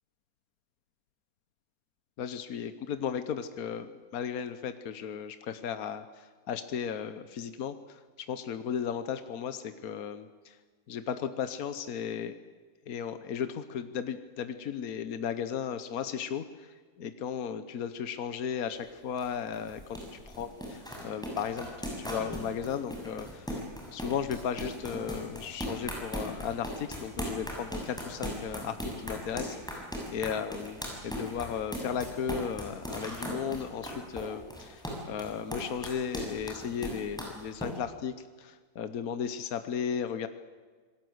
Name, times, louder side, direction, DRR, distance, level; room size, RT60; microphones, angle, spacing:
voice 1, 2.2-10.6 10.9-12.3 12.9-20.5 21.0-23.6 23.9-40.3, left 7 dB, 75° left, 10 dB, 1.5 m, -35 dB
sound 1, 18.7-37.7, equal, ahead, 6.5 m, -38 dB
27.0 x 20.5 x 8.0 m, 1.5 s
omnidirectional pair, 1.6 m